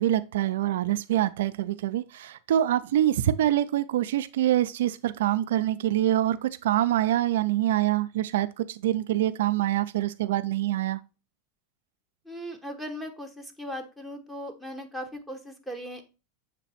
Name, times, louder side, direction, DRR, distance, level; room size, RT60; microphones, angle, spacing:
voice 1, 0.0-11.0, right 13 dB, 80° right, 0.5 m, -25 dB
voice 2, 12.2-16.0, equal, 5° left, 1.2 m, -38 dB
7.5 x 3.0 x 4.2 m
supercardioid pair, 125°, 0 cm